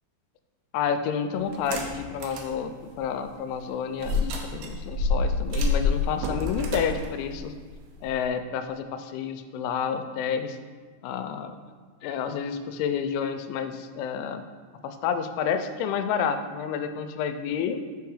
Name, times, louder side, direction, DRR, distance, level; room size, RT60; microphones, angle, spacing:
voice 1, 0.7-7.5 8.0-10.6 11.0-11.6 12.0-14.4 14.8-17.8, left 7 dB, 90° left, 8 dB, 3.0 m, -29 dB
sound 1, 1.5-2.5 3.0-3.1 4.0-8.3, left 3 dB, 85° right, 2.2 m, -28 dB
6.5 x 4.6 x 4.7 m, 1.5 s
omnidirectional pair, 5.3 m